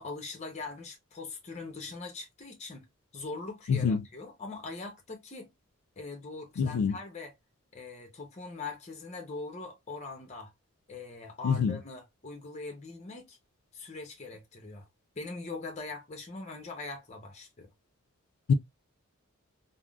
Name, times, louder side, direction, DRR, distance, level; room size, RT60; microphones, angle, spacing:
voice 1, 0.0-2.9 3.1-5.5 6.0-7.3 7.7-10.5 10.9-13.4 13.7-14.9 15.2-17.7, left 3 dB, 30° left, 0.7 m, -42 dB
voice 2, 3.7-4.0 6.6-6.9 11.4-11.8 18.5-18.6, left 6 dB, 90° left, 0.4 m, -25 dB
3.5 x 2.0 x 2.3 m
head